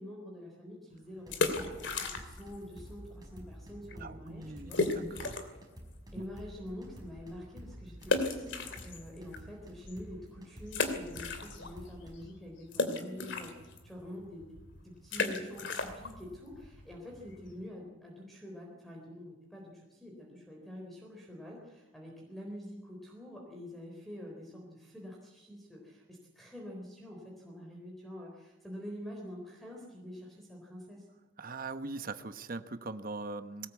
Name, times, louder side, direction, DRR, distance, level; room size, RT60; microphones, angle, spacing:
voice 1, 0.0-5.0 6.1-14.6 14.8-31.1, equal, ahead, -1 dB, 3.9 m, -46 dB
sound 1, 1.2-2.6 2.8-2.9 3.5-3.6 3.9-4.0 4.7-5.6 6.1-6.2 8.0-9.4 9.9-10.0 10.7-11.9 12.1-17.6, left 3 dB, 65° left, 2.8 m, -34 dB
sound 2, 1.2-12.3, equal, 20° right, 5.5 m, -50 dB
voice 2, 4.0-5.5 6.2-6.3 31.4-33.7, right 3 dB, 50° right, 10 dB, 1.1 m, -41 dB
21.0 x 18.5 x 8.3 m, 1.1 s
head